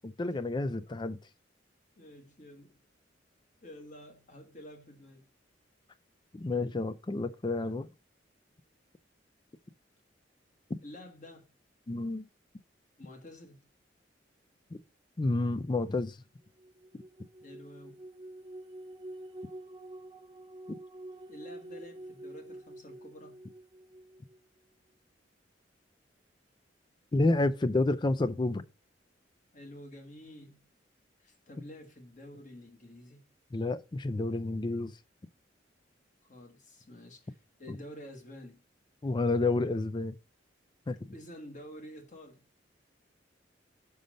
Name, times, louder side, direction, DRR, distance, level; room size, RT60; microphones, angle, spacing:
voice 1, 0.0-1.2 6.3-7.9 10.7-10.8 11.9-12.3 15.2-16.2 20.7-20.8 27.1-28.6 33.5-34.9 37.7-37.8 39.0-40.1 40.9-41.1, left 2 dB, 25° left, 0.4 m, -30 dB
voice 2, 2.0-2.8 3.6-5.3 10.8-11.5 13.0-13.7 17.4-18.0 21.3-23.5 29.5-30.7 31.2-33.3 36.3-38.6 41.1-42.4, left 1 dB, 45° left, 1.5 m, -49 dB
sound 1, 16.6-24.4, right 1 dB, 25° right, 0.8 m, -47 dB
5.5 x 5.2 x 6.3 m
head